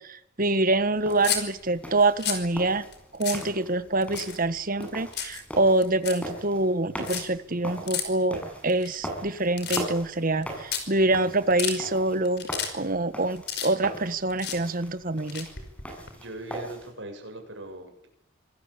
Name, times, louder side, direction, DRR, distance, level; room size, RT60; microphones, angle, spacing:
voice 1, 0.0-2.8 3.1-12.5 12.7-15.5, right 2 dB, 45° right, 13 dB, 1.5 m, -25 dB
sound 1, 1.0-16.9, right 1 dB, 5° left, 7.4 m, -40 dB
sound 2, 1.1-1.4 2.0-2.5 2.9-3.0 3.2-3.5 4.0-4.6 4.8-5.4 5.8-6.2 7.0-7.2 7.9-8.0 8.7-9.3 9.6-10.1 10.4-10.5 10.7-10.8 11.3-11.8 12.3-12.7 13.0-14.0 14.3-14.6 15.2-16.1, left 8 dB, 60° left, 5.4 m, -31 dB
voice 2, 16.1-18.1, right 2 dB, 65° right, 4 dB, 7.7 m, -40 dB
26.0 x 19.5 x 8.6 m, 0.74 s
head